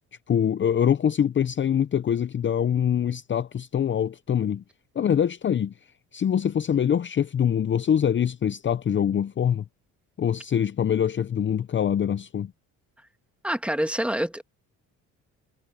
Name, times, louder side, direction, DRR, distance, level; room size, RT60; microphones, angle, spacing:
voice 1, 0.3-4.6 4.9-5.7 6.1-9.6 10.2-12.5, left 8 dB, 35° left, 0.7 m, -24 dB
voice 2, 13.4-14.4, equal, 5° right, 1.9 m, -26 dB
cardioid pair, 85°, 34 cm